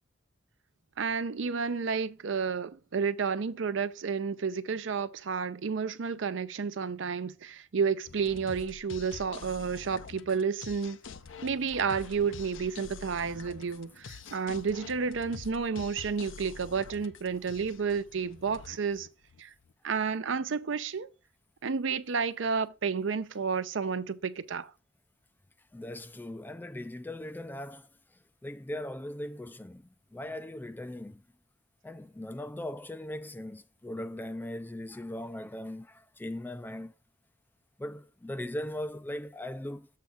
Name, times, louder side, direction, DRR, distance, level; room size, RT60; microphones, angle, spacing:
voice 1, 1.0-11.0 11.4-19.1 19.4-19.5 19.8-21.1 21.6-24.7, right 5 dB, 70° right, 0.6 m, -31 dB
sound 1, 8.1-19.7, left 5 dB, 75° left, 0.6 m, -47 dB
voice 2, 25.7-27.9 28.4-31.2 31.8-36.9 37.8-39.9, left 1 dB, 10° left, 0.3 m, -39 dB
7.6 x 3.5 x 5.6 m
head